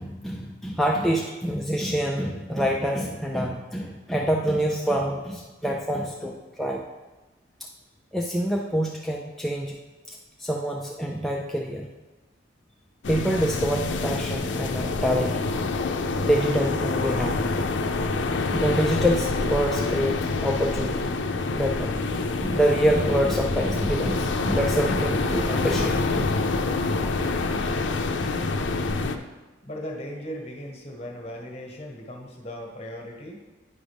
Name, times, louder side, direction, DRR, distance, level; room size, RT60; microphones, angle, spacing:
voice 1, 0.0-6.8 8.1-9.8 10.1-11.9 13.1-15.4 16.2-17.4 18.5-21.1 21.5-22.0 22.4-26.4, equal, ahead, -1 dB, 0.4 m, -26 dB
sound 1, 13.0-29.2, left 3 dB, 70° left, 0.5 m, -26 dB
voice 2, 29.6-33.4, equal, 35° left, 1 dB, 1.2 m, -37 dB
9.8 x 5.1 x 3.4 m, 1.1 s
head